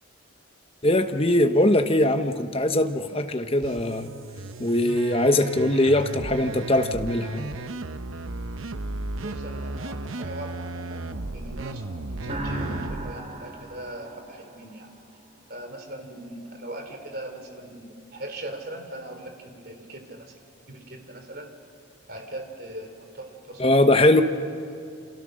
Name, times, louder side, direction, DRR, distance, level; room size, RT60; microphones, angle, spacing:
voice 1, 0.8-4.1 4.6-7.5 23.6-24.2, left 1 dB, 30° left, 7 dB, 1.1 m, -21 dB
sound 1, 3.6-13.1, right 2 dB, 85° right, 0.9 m, -35 dB
voice 2, 9.2-11.1 11.3-14.9 15.5-20.3 20.7-21.5 22.1-24.2, right 1 dB, 50° right, 5 dB, 3.2 m, -40 dB
sound 2, 12.2-14.9, right 1 dB, 30° right, 2.6 m, -35 dB
28.0 x 28.0 x 6.4 m, 2.4 s
head